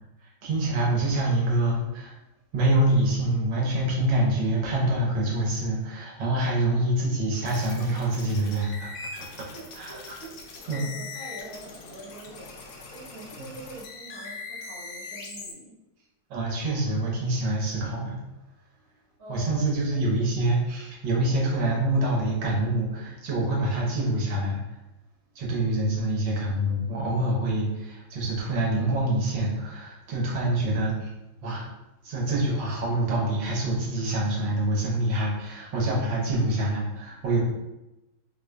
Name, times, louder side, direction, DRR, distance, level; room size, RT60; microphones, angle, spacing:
voice 1, 0.4-2.1 2.5-9.3 9.7-10.2 10.7-10.8 13.4-13.6 16.3-18.2 19.3-24.6 25.3-31.1 31.4-31.7 32.0-37.4, right 1 dB, 65° right, -3 dB, 1.4 m, -26 dB
sound 1, 7.4-15.5, left 4 dB, 80° left, 0.8 m, -41 dB
voice 2, 9.4-10.4 10.7-15.8 19.2-19.7 20.0-20.6 25.4-25.5, right 1 dB, 50° right, -9 dB, 1.2 m, -45 dB
3.8 x 2.8 x 2.2 m, 0.96 s
omnidirectional pair, 2.3 m